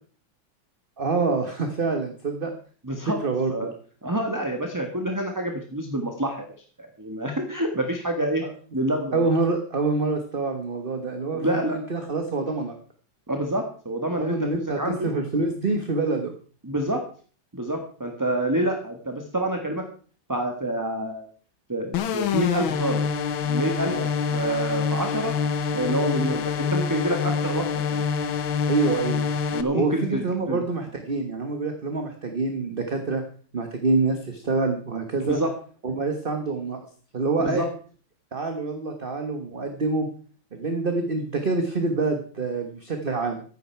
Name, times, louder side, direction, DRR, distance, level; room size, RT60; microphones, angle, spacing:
voice 1, 1.0-2.5 3.1-3.5 8.4-8.5 9.1-12.8 14.2-16.3 23.9-24.1 28.7-29.3 29.7-33.2 33.5-35.4 35.8-36.8 37.1-37.7 38.3-40.1 40.5-43.4, right 3 dB, 30° right, 5 dB, 1.4 m, -26 dB
voice 2, 2.8-3.2 3.5-3.7 4.0-6.5 6.8-8.5 8.7-9.3 11.3-11.8 13.3-15.1 16.6-17.0 17.5-19.8 20.3-21.3 21.7-23.0 23.4-23.9 24.3-25.4 25.7-27.6 27.9-28.0 29.5-30.6 35.2-35.5 37.4-37.7, right 1 dB, 10° right, 4 dB, 1.4 m, -27 dB
sound 1, 21.9-29.6, left 6 dB, 85° left, 1.8 m, -26 dB
15.0 x 11.5 x 4.6 m, 0.43 s
omnidirectional pair, 2.2 m